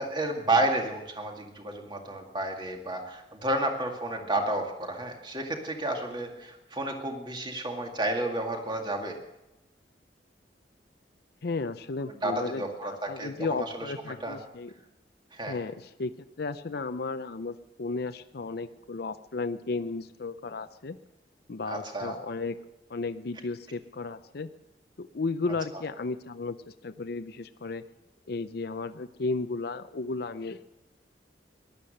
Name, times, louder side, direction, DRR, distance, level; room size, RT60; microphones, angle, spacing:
voice 1, 0.0-9.2 12.2-13.3 13.8-13.9 14.2-14.4 15.3-15.5 21.7-22.2, right 1 dB, 25° right, 3 dB, 2.1 m, -31 dB
voice 2, 11.4-14.7 15.5-16.1 16.4-21.0 21.5-22.6 22.9-24.5 25.0-27.8 28.3-30.6, left 3 dB, 60° left, 10 dB, 0.6 m, -34 dB
18.0 x 12.0 x 6.6 m, 0.95 s
head